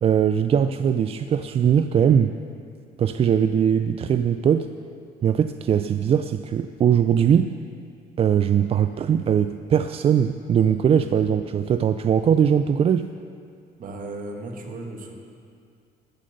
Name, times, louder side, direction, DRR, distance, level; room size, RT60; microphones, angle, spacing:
voice 1, 0.0-2.4 3.0-4.7 5.2-7.5 8.2-13.1, right 8 dB, 35° right, 10 dB, 0.3 m, -20 dB
voice 2, 13.8-15.1, right 2 dB, 55° right, 2 dB, 1.8 m, -35 dB
14.0 x 7.7 x 6.8 m, 2.3 s
cardioid pair, 110°, 17 cm